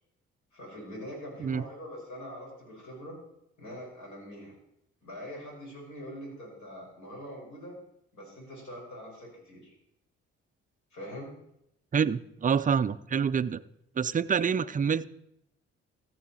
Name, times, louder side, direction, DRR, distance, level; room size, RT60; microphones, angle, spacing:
voice 1, 0.5-3.2 3.6-4.5 5.0-7.7 8.1-9.7 10.9-11.3, equal, 55° left, -2 dB, 5.5 m, -43 dB
voice 2, 11.9-13.6 14.0-15.1, right 6 dB, 25° right, 14 dB, 0.5 m, -27 dB
14.0 x 7.7 x 4.3 m, 0.78 s
hypercardioid pair, 45°, 34 cm